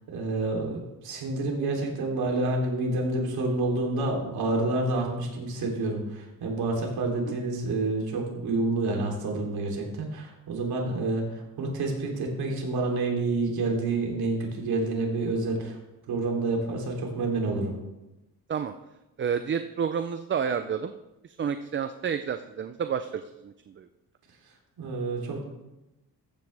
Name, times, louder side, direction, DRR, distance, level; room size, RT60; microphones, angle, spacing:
voice 1, 0.1-15.8 16.1-17.7 24.8-25.4, right 2 dB, 75° right, 0 dB, 3.1 m, -28 dB
voice 2, 19.2-20.9 21.2-23.9, right 7 dB, 30° right, 10 dB, 0.5 m, -30 dB
14.5 x 9.6 x 3.4 m, 0.99 s
cardioid pair, 110°, 38 cm